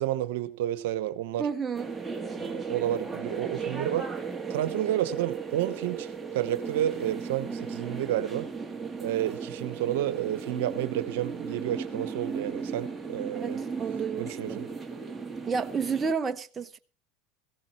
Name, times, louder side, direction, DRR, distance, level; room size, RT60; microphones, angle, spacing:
voice 1, 0.0-1.5 2.4-4.1 4.5-6.1 6.3-8.5 9.0-13.6 14.2-14.7, right 12 dB, 75° right, 1.0 m, -30 dB
voice 2, 1.4-1.9 13.3-14.6 15.5-16.8, right 5 dB, 25° right, 0.8 m, -31 dB
sound 1, 1.7-16.1, right 5 dB, 10° right, 2.0 m, -36 dB
18.0 x 15.5 x 3.1 m
hypercardioid pair, 95°, 0 cm